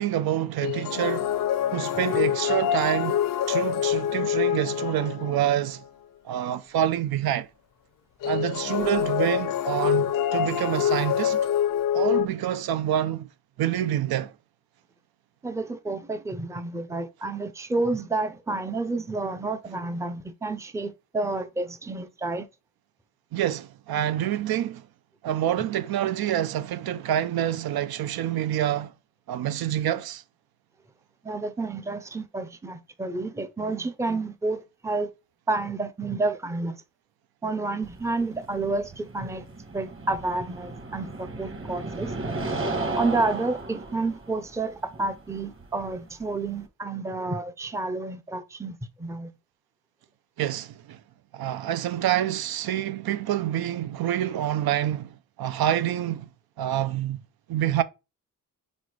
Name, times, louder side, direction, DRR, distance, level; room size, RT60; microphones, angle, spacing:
voice 1, 0.0-1.4 1.7-5.8 6.2-7.5 8.2-11.4 11.9-13.3 13.6-14.3 23.3-24.9 25.2-28.9 29.3-30.2 50.4-51.0 51.3-56.3 56.6-57.2 57.5-57.8, right 11 dB, 80° right, 0.6 m, -27 dB
sound 1, 0.6-5.7 8.2-12.3, left 10 dB, 65° left, 0.5 m, -26 dB
voice 2, 15.4-22.5 31.2-35.1 35.5-36.8 37.4-39.4 39.7-42.1 43.0-49.3, right 3 dB, 10° right, 0.5 m, -30 dB
sound 2, 37.8-46.7, right 2 dB, 35° right, 1.3 m, -35 dB
5.0 x 4.3 x 4.6 m
wide cardioid pair, 160°, 36 cm